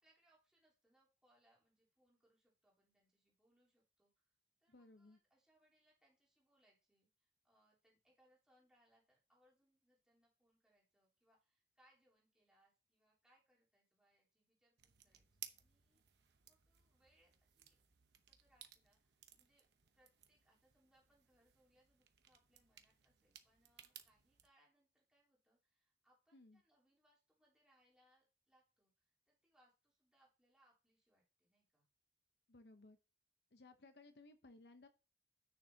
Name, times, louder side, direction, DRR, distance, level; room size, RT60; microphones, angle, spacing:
voice 1, 0.0-4.3 4.6-16.0 16.5-17.8 18.3-19.6 19.9-31.9, right 1 dB, 5° right, -5 dB, 3.4 m, -77 dB
voice 2, 4.7-5.2 26.3-26.6 32.5-33.0 33.5-34.9, left 2 dB, 65° left, 9 dB, 0.8 m, -61 dB
sound 1, 14.8-24.5, right 11 dB, 75° right, 0.9 m, -60 dB
10.0 x 6.5 x 2.8 m, 0.32 s
head